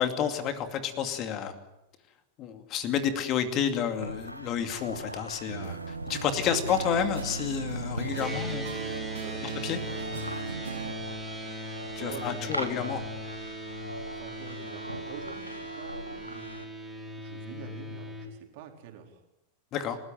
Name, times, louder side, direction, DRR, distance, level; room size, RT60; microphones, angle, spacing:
voice 1, 0.0-1.6 2.4-8.6 9.6-9.8 11.9-13.0 19.7-20.0, left 8 dB, 35° left, 8 dB, 2.5 m, -30 dB
sound 1, 4.0-16.6, equal, 90° right, 1.3 m, -41 dB
sound 2, 5.5-10.9, right 5 dB, 70° right, 1.3 m, -37 dB
voice 2, 8.1-8.6 9.1-9.5 12.0-12.7 14.0-16.6 17.2-19.2, right 8 dB, 50° right, 3 dB, 4.3 m, -46 dB
sound 3, 8.2-18.3, equal, ahead, 4.5 m, -39 dB
29.5 x 14.0 x 9.2 m, 0.90 s
figure-of-eight pair, 90°, 0 cm